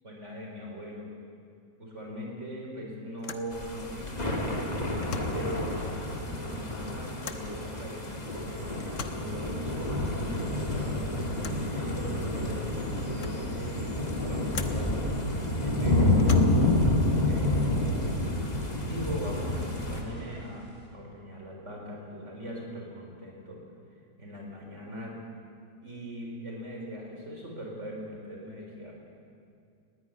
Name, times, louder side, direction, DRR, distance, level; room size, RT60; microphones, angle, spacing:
voice 1, 0.0-1.1 1.8-4.6 5.3-15.3 15.6-16.9 17.2-18.0 18.8-23.6 24.2-25.1 25.8-28.9, equal, 45° right, 0 dB, 4.7 m, -40 dB
sound 1, 1.9-2.2 2.4-2.5 3.2-3.6 4.9-5.5 7.2-7.5 8.8-9.3 11.4-11.7 12.5-12.6 12.9-13.5 14.5-14.9 16.1-16.8, left 5 dB, 55° left, 1.3 m, -41 dB
sound 2, 3.5-20.0, left 1 dB, 25° left, 2.3 m, -29 dB
sound 3, 8.5-20.9, right 1 dB, 20° right, 5.0 m, -46 dB
20.0 x 15.0 x 9.7 m, 2.5 s
omnidirectional pair, 1.7 m